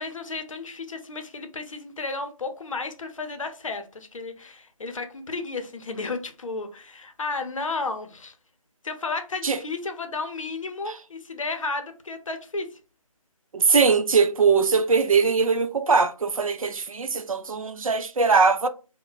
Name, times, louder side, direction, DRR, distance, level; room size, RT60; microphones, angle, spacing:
voice 1, 0.0-8.3 8.8-12.7, left 3 dB, 65° left, 0.7 m, -33 dB
voice 2, 13.5-18.7, right 5 dB, 70° right, 0.5 m, -21 dB
2.2 x 2.1 x 3.8 m
figure-of-eight pair, 170°, 18 cm